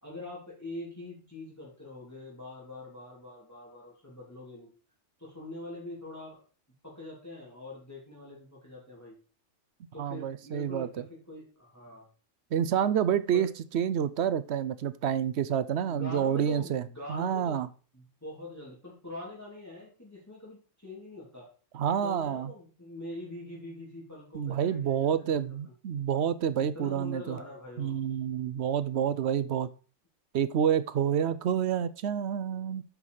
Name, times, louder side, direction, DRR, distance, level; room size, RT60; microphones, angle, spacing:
voice 1, 0.0-4.7 5.2-6.4 6.8-9.2 9.9-12.1 13.3-13.5 15.8-17.6 17.9-21.5 21.9-25.7 26.7-28.0, left 2 dB, 10° left, -5 dB, 3.1 m, -44 dB
voice 2, 10.0-10.9 12.5-13.5 13.7-16.8 17.1-17.7 21.7-22.5 24.3-27.4 27.8-29.7 30.3-32.8, right 9 dB, 65° right, 14 dB, 0.8 m, -28 dB
8.3 x 5.6 x 4.9 m, 0.37 s
omnidirectional pair, 1.3 m